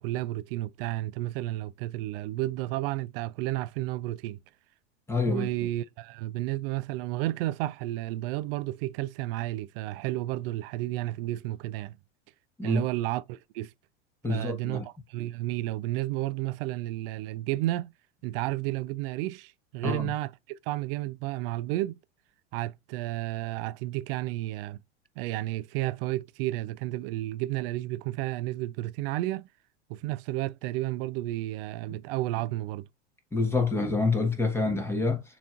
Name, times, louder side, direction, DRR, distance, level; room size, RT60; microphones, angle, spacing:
voice 1, 0.0-4.4 5.3-12.0 12.6-13.7 14.3-17.9 18.2-20.3 20.7-22.0 22.5-24.8 25.2-29.5 29.9-32.9, right 16 dB, 55° right, 0.4 m, -32 dB
voice 2, 5.1-5.5 12.6-12.8 14.2-14.8 19.8-20.1 33.3-35.2, left 3 dB, 5° left, 1.4 m, -27 dB
6.9 x 3.1 x 2.5 m
hypercardioid pair, 110°, 36 cm